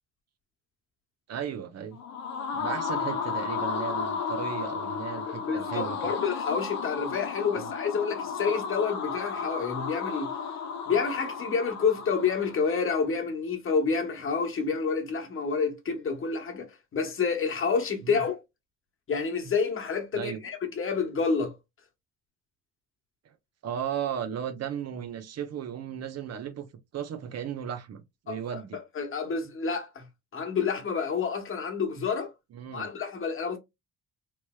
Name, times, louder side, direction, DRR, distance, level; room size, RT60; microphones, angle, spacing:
voice 1, 1.3-2.0 2.5-6.1 7.5-7.7 18.0-18.2 20.1-20.4 23.2-23.3 23.6-26.7 26.9-28.8 32.5-32.9, right 8 dB, 55° right, 0.7 m, -35 dB
sound 1, 1.9-12.8, left 6 dB, 65° left, 0.7 m, -33 dB
voice 2, 5.3-10.3 10.9-18.4 19.1-21.6 28.3-30.0 30.3-32.3 32.7-33.6, left 5 dB, 45° left, 1.0 m, -29 dB
3.1 x 2.9 x 2.2 m
cardioid pair, 90°, 30 cm